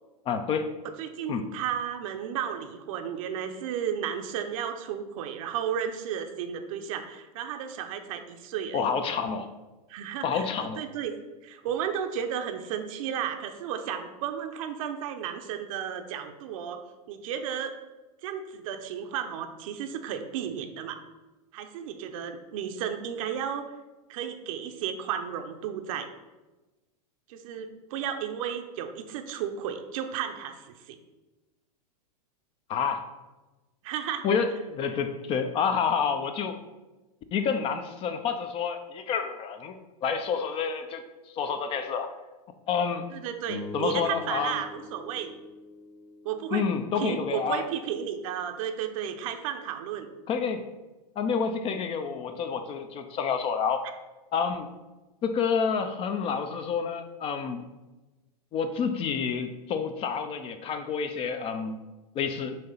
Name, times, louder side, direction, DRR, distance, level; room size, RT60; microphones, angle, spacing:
voice 1, 0.3-0.7 1.3-1.4 8.7-9.5 10.2-10.8 32.7-33.0 34.2-36.6 37.3-41.0 41.3-42.1 42.7-43.1 43.7-44.6 46.5-47.7 50.3-50.6 51.2-53.9 54.3-54.7 55.2-57.6 58.5-61.8 62.1-62.6, left 6 dB, 30° left, 8 dB, 0.5 m, -28 dB
voice 2, 1.0-8.9 9.9-10.5 10.8-11.1 11.4-16.8 17.1-17.7 18.2-21.0 21.5-23.7 24.1-26.1 27.3-31.0 33.8-34.2 43.1-45.3 46.2-46.7 47.0-50.1, right 8 dB, 55° right, 6 dB, 0.7 m, -33 dB
sound 1, 43.4-48.0, left 3 dB, 90° left, 0.9 m, -44 dB
7.5 x 2.9 x 5.6 m, 1.1 s
hypercardioid pair, 130°, 20 cm